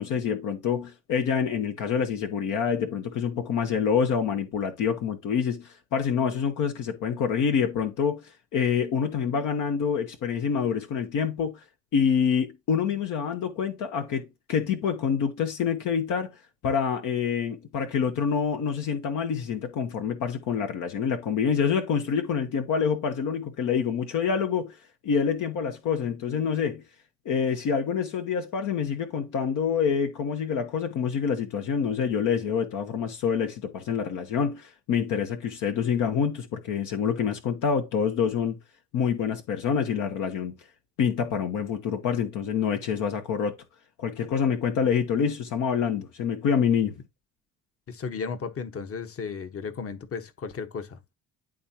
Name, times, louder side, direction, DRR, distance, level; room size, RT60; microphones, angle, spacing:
voice 1, 0.0-11.6 11.9-24.8 25.0-26.8 27.2-38.6 38.9-40.6 41.0-43.6 44.0-46.9, left 7 dB, 60° left, 1.1 m, -27 dB
voice 2, 47.9-51.1, left 5 dB, 40° left, 1.3 m, -35 dB
11.0 x 3.6 x 2.9 m
hypercardioid pair, 60°, 35 cm